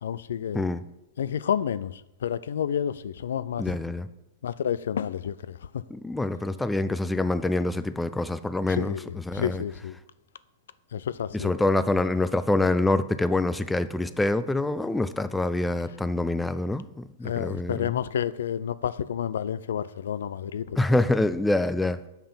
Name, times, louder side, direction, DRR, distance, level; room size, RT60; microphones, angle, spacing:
voice 1, 0.0-0.7 1.2-3.8 4.4-5.8 8.7-9.9 10.9-11.5 17.2-20.6, left 9 dB, 85° left, 0.3 m, -30 dB
voice 2, 3.6-4.1 5.9-9.6 11.3-17.9 20.8-22.0, left 2 dB, 5° left, 0.3 m, -26 dB
6.8 x 5.6 x 5.6 m
hypercardioid pair, 145°, 0 cm